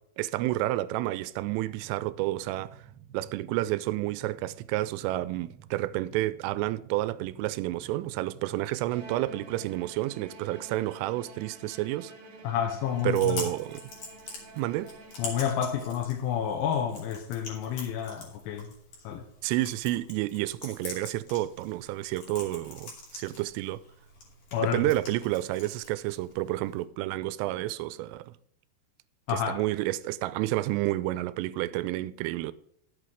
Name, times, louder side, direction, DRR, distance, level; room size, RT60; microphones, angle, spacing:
voice 1, 0.2-2.8 3.1-12.1 13.0-13.8 14.6-14.9 19.4-23.8 24.6-28.3 29.3-32.5, right 16 dB, 85° right, 3.1 m, -30 dB
sound 1, 1.4-9.9, right 9 dB, 70° right, 3.1 m, -52 dB
Bowed string instrument, 8.9-15.9, right 3 dB, 55° right, 2.1 m, -49 dB
voice 2, 12.4-13.4 15.2-18.7 19.0-19.2 24.5-24.8 29.3-29.6, left 9 dB, 80° left, 3.2 m, -29 dB
Chewing mastication, 12.8-26.8, left 3 dB, 45° left, 3.6 m, -45 dB
11.0 x 8.0 x 4.9 m
omnidirectional pair, 5.6 m